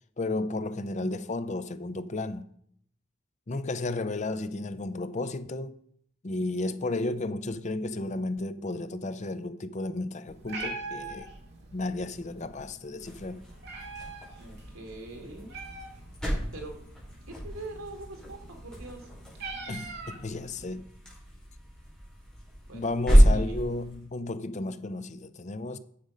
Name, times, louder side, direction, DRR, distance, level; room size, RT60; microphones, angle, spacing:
voice 1, 0.2-2.5 3.5-5.8 6.2-11.3 11.7-13.4 19.7-20.9 22.7-25.8, left 2 dB, 35° left, 0.6 m, -33 dB
Meow, 10.3-20.7, right 3 dB, 55° right, 2.3 m, -44 dB
sound 1, 13.0-24.1, equal, 5° left, 4.4 m, -29 dB
voice 2, 14.4-15.5 16.5-16.8 17.4-19.1 22.7-23.6, right 2 dB, 85° right, 2.5 m, -43 dB
10.0 x 7.1 x 5.1 m
head